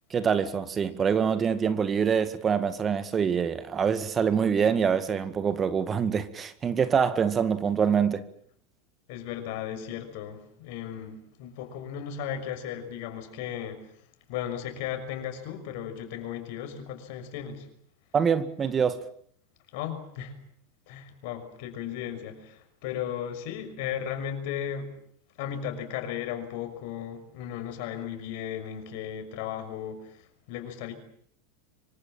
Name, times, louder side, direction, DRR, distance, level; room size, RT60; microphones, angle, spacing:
voice 1, 0.1-8.3 18.1-19.0, right 7 dB, 25° right, 2.0 m, -25 dB
voice 2, 9.1-13.9 14.3-17.7 19.7-20.4 20.9-24.9 25.4-30.9, left 9 dB, 60° left, 6.2 m, -36 dB
25.5 x 24.5 x 7.6 m
hypercardioid pair, 90°, 0 cm